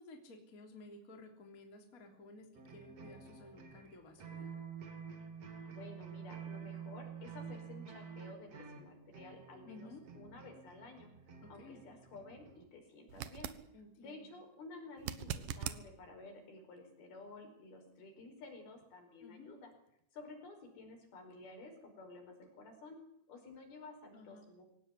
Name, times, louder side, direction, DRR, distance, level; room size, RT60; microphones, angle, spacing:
voice 1, 0.0-4.6 9.6-10.0 11.4-11.8 13.7-14.3 19.2-19.5 24.1-24.5, left 2 dB, 20° left, 3 dB, 3.1 m, -55 dB
sound 1, 2.5-12.7, right 6 dB, 40° right, 3.1 m, -49 dB
voice 2, 5.7-9.9 10.1-11.1 11.5-13.5 14.0-19.7 20.1-23.0 23.3-24.6, left 3 dB, 60° left, 4 dB, 6.8 m, -53 dB
sound 2, 13.1-13.6 15.0-15.8 18.8-18.9, right 10 dB, 65° right, 2.4 m, -41 dB
24.0 x 17.5 x 9.9 m, 0.75 s
omnidirectional pair, 5.0 m